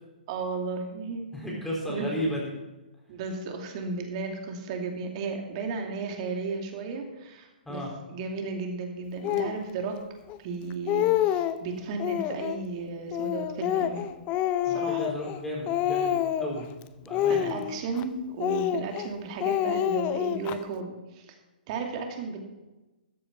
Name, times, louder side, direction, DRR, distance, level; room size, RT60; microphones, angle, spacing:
voice 1, 0.3-1.3 1.9-2.1 3.1-7.8 8.1-10.0 10.4-14.1 14.6-15.1 17.3-21.3 21.7-22.4, right 4 dB, 40° right, 3 dB, 2.5 m, -34 dB
voice 2, 1.3-2.4 7.7-7.9 14.6-16.7 17.0-17.5, equal, 5° left, -3 dB, 4.2 m, -34 dB
Speech, 9.2-9.6 10.3-10.4 10.7-11.6 12.0-12.6 13.1-15.4 15.7-16.6 17.1-18.0 18.4-19.1 19.4-20.6, left 11 dB, 30° left, 0.6 m, -27 dB
13.5 x 7.7 x 5.8 m, 1.1 s
hypercardioid pair, 130°, 5 cm